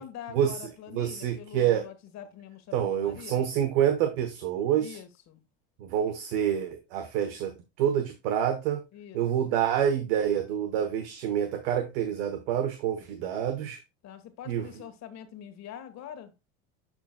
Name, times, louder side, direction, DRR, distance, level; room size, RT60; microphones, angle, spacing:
voice 1, 0.0-3.5 4.8-5.4 8.9-9.5 14.0-16.3, left 10 dB, 55° left, 1.5 m, -45 dB
voice 2, 0.9-1.8 2.7-5.0 5.8-7.5 7.8-8.8 9.1-13.8 14.5-14.7, right 9 dB, 80° right, 1.1 m, -27 dB
12.0 x 4.5 x 2.2 m
supercardioid pair, 90°, 33 cm